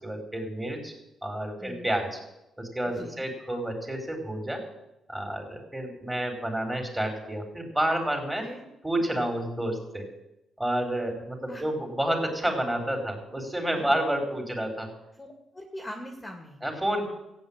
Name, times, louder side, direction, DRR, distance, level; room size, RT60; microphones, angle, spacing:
voice 1, 0.0-0.9 1.2-2.2 2.6-4.6 5.1-8.5 8.8-10.1 10.6-14.9 16.6-17.1, right 1 dB, 10° right, 4 dB, 4.5 m, -29 dB
voice 2, 1.6-1.9 2.9-3.3 8.4-8.7 11.5-11.7 13.7-14.0 15.2-16.6, left 1 dB, 15° left, 2 dB, 2.5 m, -42 dB
15.0 x 8.8 x 8.9 m, 0.88 s
cardioid pair, 90°, 0 cm